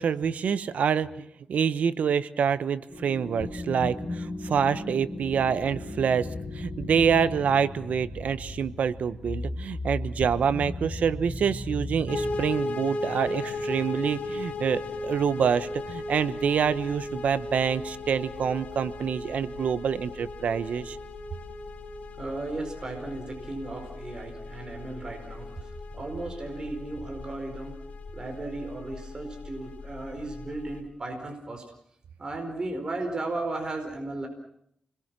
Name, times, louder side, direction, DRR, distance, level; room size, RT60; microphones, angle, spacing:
voice 1, 0.0-6.3 6.5-21.0, right 7 dB, 80° right, 14 dB, 1.0 m, -26 dB
sound 1, 2.9-12.5, left 2 dB, 25° left, 4.9 m, -36 dB
sound 2, 12.1-30.8, left 2 dB, 80° left, 2.9 m, -37 dB
voice 2, 22.2-27.8 28.1-31.6 32.2-34.3, right 2 dB, 35° right, 3 dB, 4.8 m, -35 dB
29.5 x 21.5 x 6.2 m, 0.71 s
wide cardioid pair, 120°, 2 cm